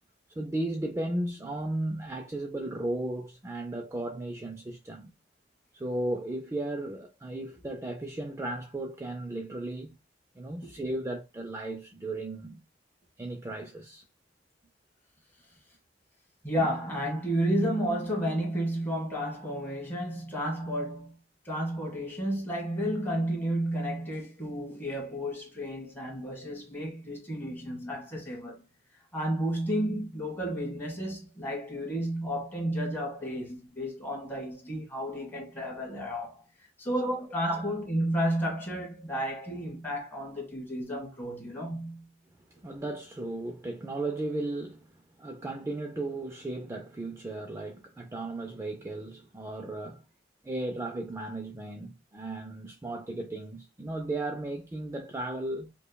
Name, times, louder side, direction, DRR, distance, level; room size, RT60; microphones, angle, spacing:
voice 1, 0.4-5.1 5.7-9.9 10.4-12.6 13.2-14.0 16.6-16.7 37.0-37.2 37.5-37.6 42.6-50.0 50.4-55.7, right 2 dB, 15° right, 0.3 m, -35 dB
voice 2, 16.4-21.2 21.4-28.6 29.1-42.1, equal, 10° left, 1.3 m, -32 dB
4.9 x 2.1 x 2.2 m
head